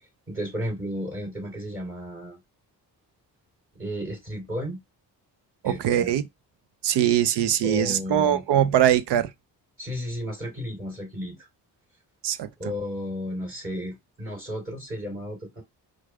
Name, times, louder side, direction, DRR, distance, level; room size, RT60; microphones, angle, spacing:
voice 1, 0.3-2.4 3.7-4.8 5.6-6.1 7.6-8.4 9.8-11.5 12.6-15.6, equal, 30° right, 3.4 m, -33 dB
voice 2, 5.6-6.2 6.8-9.3 12.2-12.5, right 10 dB, 70° right, 0.7 m, -22 dB
4.8 x 2.2 x 4.7 m
supercardioid pair, 55°, 43 cm